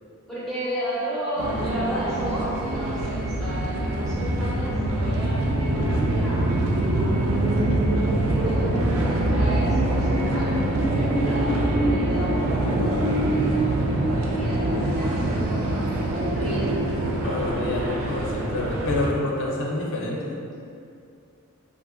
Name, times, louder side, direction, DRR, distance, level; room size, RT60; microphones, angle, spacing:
voice 1, 0.3-7.4 8.3-15.6 16.1-16.8, equal, ahead, -11 dB, 0.4 m, -33 dB
sound 1, 1.4-19.1, right 1 dB, 75° right, 0.3 m, -24 dB
voice 2, 17.2-20.4, left 2 dB, 60° left, -2 dB, 0.5 m, -28 dB
2.9 x 2.5 x 2.4 m, 2.5 s
head